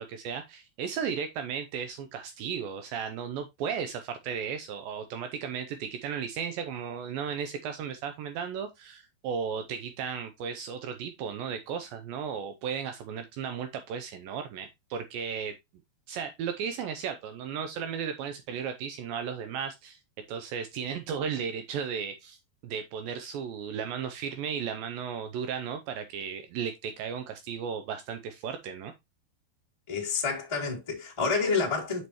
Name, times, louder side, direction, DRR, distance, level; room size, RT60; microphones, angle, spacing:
voice 1, 0.0-15.5 16.1-20.0 20.3-22.4 22.6-28.9, right 7 dB, 85° right, 2.1 m, -35 dB
voice 2, 29.9-32.1, left 4 dB, 40° left, 0.4 m, -29 dB
7.7 x 5.3 x 2.9 m
omnidirectional pair, 4.8 m